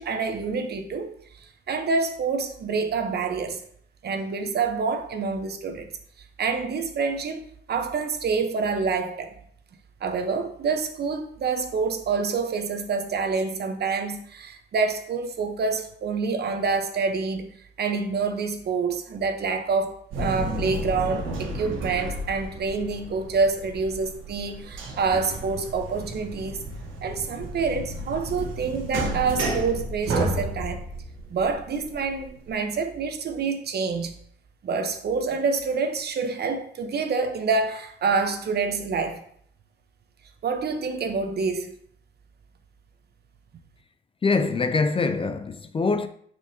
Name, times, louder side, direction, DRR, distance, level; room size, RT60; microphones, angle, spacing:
voice 1, 0.0-3.6 4.0-5.9 6.4-9.3 10.0-17.5 17.8-26.6 27.0-30.8 31.3-34.1 34.6-39.2 40.4-41.7, right 4 dB, 55° right, 0.9 m, -27 dB
sound 1, 20.1-32.5, right 1 dB, 80° right, 1.5 m, -32 dB
voice 2, 44.2-46.1, left 4 dB, 30° left, 0.4 m, -24 dB
6.3 x 6.2 x 2.8 m
cardioid pair, 90°, 20 cm